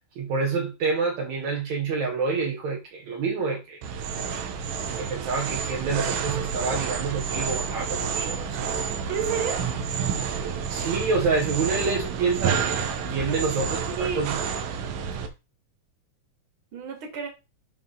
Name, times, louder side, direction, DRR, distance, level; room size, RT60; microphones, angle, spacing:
voice 1, 0.2-3.8 4.3-4.4 5.0-8.7 10.7-14.3, right 4 dB, 65° right, 2.6 m, -28 dB
sound 1, 3.8-15.3, right 7 dB, 80° right, 2.8 m, -29 dB
voice 2, 9.1-9.7 13.9-14.4 16.7-17.3, right 6 dB, 40° right, 2.8 m, -30 dB
11.0 x 4.8 x 3.9 m
omnidirectional pair, 3.7 m